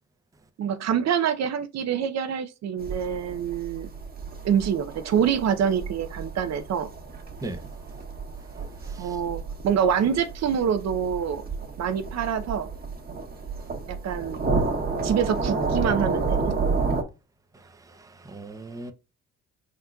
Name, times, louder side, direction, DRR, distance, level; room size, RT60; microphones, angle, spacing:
voice 1, 0.6-3.9 4.4-6.9 9.0-11.4 11.8-12.7 13.9-14.4 15.0-16.6, right 8 dB, 60° right, 0.6 m, -26 dB
sound 1, 2.8-17.0, right 4 dB, 30° right, 1.2 m, -31 dB
voice 2, 8.8-9.2 17.5-18.9, right 2 dB, 10° right, 0.6 m, -39 dB
4.3 x 3.9 x 2.3 m
cardioid pair, 90°, 30 cm